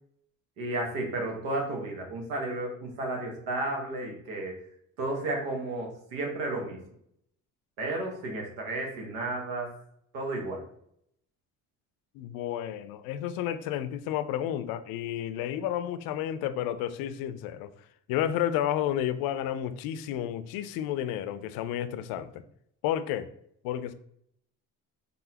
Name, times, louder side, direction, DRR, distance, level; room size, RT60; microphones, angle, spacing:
voice 1, 0.6-4.6 5.0-6.8 7.8-9.7 10.1-10.6, right 2 dB, 85° right, 1.2 m, -33 dB
voice 2, 12.1-17.7 18.1-22.4 22.8-23.3 23.6-23.9, left 11 dB, 80° left, 0.5 m, -31 dB
3.9 x 3.7 x 2.8 m
supercardioid pair, 85°, 35 cm